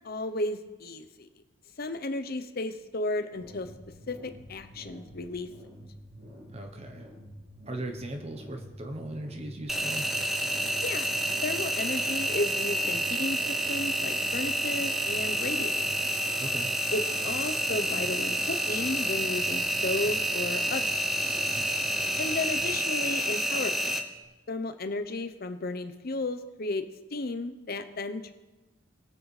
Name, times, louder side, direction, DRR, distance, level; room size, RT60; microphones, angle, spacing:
voice 1, 0.0-1.3 1.8-3.7 4.1-5.5 10.8-11.1 11.4-16.0 16.9-20.9 22.2-24.0 24.5-26.8 27.1-28.3, left 2 dB, 50° left, 9 dB, 0.7 m, -33 dB
sound 1, 3.3-22.6, equal, 60° right, 3.6 m, -48 dB
voice 2, 6.5-7.1 7.7-10.1 16.4-16.7 21.3-21.7, right 1 dB, 30° right, 5 dB, 0.9 m, -38 dB
Engine, 9.7-24.0, right 1 dB, ahead, 0.7 m, -29 dB
21.5 x 7.6 x 3.3 m, 1.1 s
head